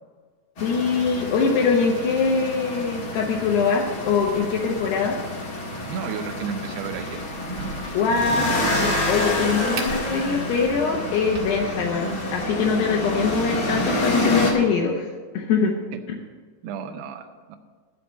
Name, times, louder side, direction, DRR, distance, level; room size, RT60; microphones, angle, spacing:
voice 1, 0.6-5.2 7.9-15.1 15.3-15.8, left 5 dB, 75° left, -1 dB, 2.9 m, -23 dB
sound 1, 0.6-14.5, left 1 dB, 45° left, 1.8 m, -28 dB
voice 2, 5.9-7.2 16.6-17.6, right 6 dB, 80° right, 5 dB, 2.7 m, -32 dB
Crack, 7.3-12.3, right 3 dB, 60° right, 3.2 m, -40 dB
13.0 x 5.0 x 8.3 m, 1.5 s
omnidirectional pair, 5.0 m